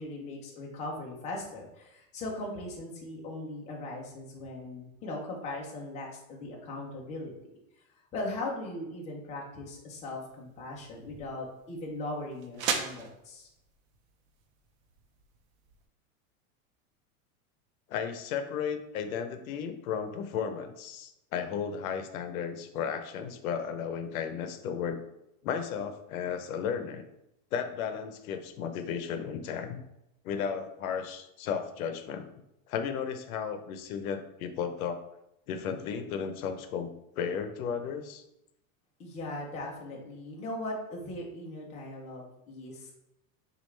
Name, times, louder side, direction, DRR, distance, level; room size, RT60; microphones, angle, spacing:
voice 1, 0.0-7.5 8.1-13.5 39.0-42.9, left 2 dB, 15° left, -2 dB, 0.6 m, -39 dB
sound 1, 9.9-15.8, right 6 dB, 75° right, 0.8 m, -40 dB
voice 2, 17.9-25.0 25.4-27.0 27.5-29.8 30.2-32.3 32.7-35.0 35.5-38.2, left 7 dB, 90° left, 8 dB, 0.7 m, -34 dB
6.3 x 2.5 x 3.2 m, 0.86 s
supercardioid pair, 165°, 41 cm